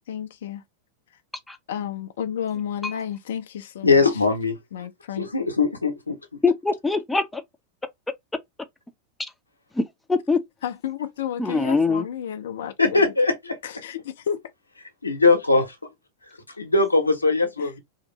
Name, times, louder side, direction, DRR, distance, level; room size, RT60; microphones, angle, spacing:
voice 1, 0.1-0.6 1.7-3.9 4.7-5.3 10.6-13.0 13.6-14.4 17.6-17.7, left 9 dB, 60° left, 0.4 m, -31 dB
voice 2, 3.8-4.9 5.2-6.2 12.8-13.8 15.0-15.8 16.6-17.7, left 3 dB, 80° left, 0.8 m, -21 dB
voice 3, 6.4-7.4 9.8-10.4 11.4-12.1, left 4 dB, 10° left, 0.5 m, -23 dB
2.8 x 2.5 x 3.0 m
figure-of-eight pair, 90°, 0 cm